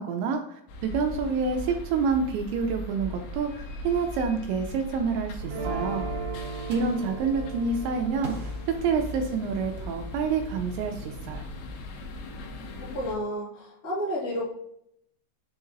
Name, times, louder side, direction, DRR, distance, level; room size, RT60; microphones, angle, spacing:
voice 1, 0.0-6.1 6.7-8.5 8.8-11.5, right 5 dB, 85° right, 4 dB, 2.6 m, -28 dB
sound 1, 0.7-13.2, left 1 dB, 90° left, 3.3 m, -38 dB
sound 2, 5.4-11.5, right 4 dB, 60° right, 2.3 m, -39 dB
sound 3, 6.7-7.2 8.2-9.7, right 2 dB, 40° right, 1.4 m, -43 dB
voice 2, 12.8-14.5, equal, 55° left, -8 dB, 0.9 m, -31 dB
9.8 x 3.9 x 2.6 m, 0.72 s
omnidirectional pair, 5.6 m